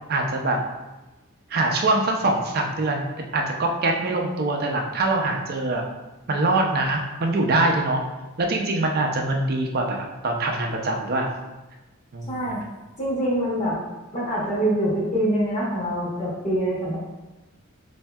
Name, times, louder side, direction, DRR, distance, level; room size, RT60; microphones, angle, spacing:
voice 1, 0.1-0.6 1.5-3.0 3.3-5.8 6.3-8.0 8.4-11.3 12.1-12.4, right 2 dB, 45° right, 1 dB, 0.5 m, -23 dB
voice 2, 12.2-12.6 13.0-13.8 14.1-16.9, right 1 dB, 35° left, -7 dB, 1.2 m, -24 dB
4.4 x 2.6 x 2.2 m, 1.1 s
head